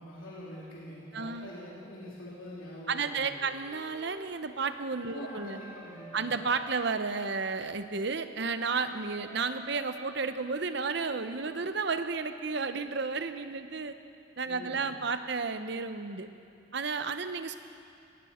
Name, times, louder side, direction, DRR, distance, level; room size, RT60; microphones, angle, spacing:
voice 1, 0.0-3.5 5.1-6.4 14.4-14.9, left 1 dB, 90° left, -7 dB, 3.0 m, -44 dB
voice 2, 1.1-1.5 2.9-5.6 6.1-13.9 14.4-16.3 16.7-17.6, right 4 dB, 55° right, 10 dB, 0.7 m, -32 dB
Wind instrument woodwind instrument, 3.3-7.4 8.4-11.7, equal, 10° right, 1.6 m, -52 dB
19.5 x 16.5 x 4.3 m, 2.6 s
head